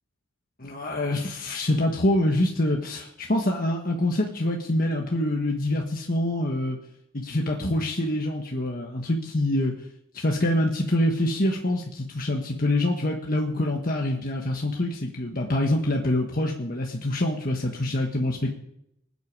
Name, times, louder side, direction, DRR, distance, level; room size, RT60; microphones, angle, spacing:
voice 1, 0.6-6.8 7.1-9.7 10.1-18.5, left 1 dB, 45° left, 1 dB, 1.4 m, -25 dB
24.5 x 8.3 x 4.8 m, 0.80 s
head